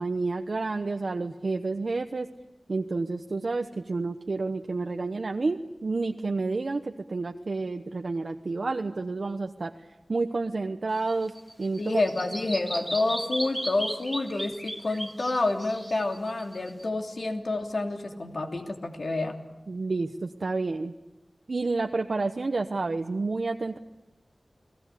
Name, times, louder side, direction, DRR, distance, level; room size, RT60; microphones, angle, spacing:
voice 1, 0.0-2.3 2.7-9.7 10.1-11.8 19.7-20.9 21.5-23.8, right 3 dB, 65° right, 5 dB, 1.0 m, -30 dB
Bird vocalization bird call bird song, 10.9-16.8, equal, ahead, 1.9 m, -36 dB
voice 2, 11.8-19.4, left 2 dB, 65° left, 3 dB, 2.9 m, -29 dB
30.0 x 19.5 x 8.4 m, 1.0 s
wide cardioid pair, 80°, 0 cm